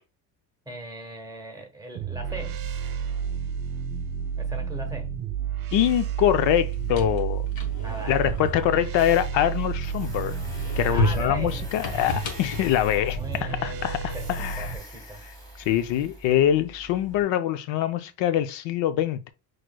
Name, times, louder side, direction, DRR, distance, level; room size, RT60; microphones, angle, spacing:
voice 1, 0.7-2.6 4.4-5.1 7.8-8.8 10.9-11.7 12.8-15.3, right 1 dB, 10° right, 1.1 m, -39 dB
sound 1, 1.9-14.8, right 7 dB, 50° right, 0.9 m, -31 dB
voice 2, 5.7-7.5 8.1-10.4 10.8-14.7 15.6-19.3, left 11 dB, 75° left, 0.6 m, -24 dB
sound 2, 6.6-9.8 10.3-13.7, left 1 dB, 55° left, 1.1 m, -32 dB
Tools, 9.0-17.2, right 1 dB, 10° left, 2.2 m, -45 dB
6.0 x 3.1 x 2.2 m
cardioid pair, 130°, 44 cm